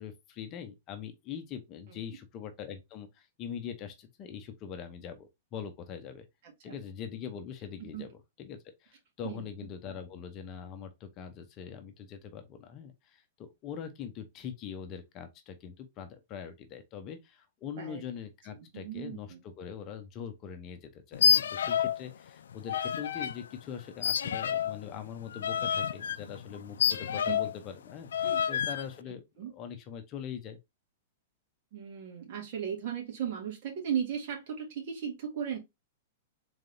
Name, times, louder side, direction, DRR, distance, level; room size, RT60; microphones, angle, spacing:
voice 1, 0.0-6.3 6.6-30.6, left 8 dB, 35° left, 0.7 m, -42 dB
voice 2, 18.6-19.4 26.9-27.0 27.3-27.4 28.2-28.4 29.4-29.5 31.7-35.6, right 8 dB, 55° right, 1.6 m, -36 dB
sound 1, 21.1-22.0 22.3-23.4 24.0-27.6 28.1-28.9, left 8 dB, 90° left, 0.3 m, -29 dB
3.9 x 3.3 x 2.6 m
hypercardioid pair, 145°, 0 cm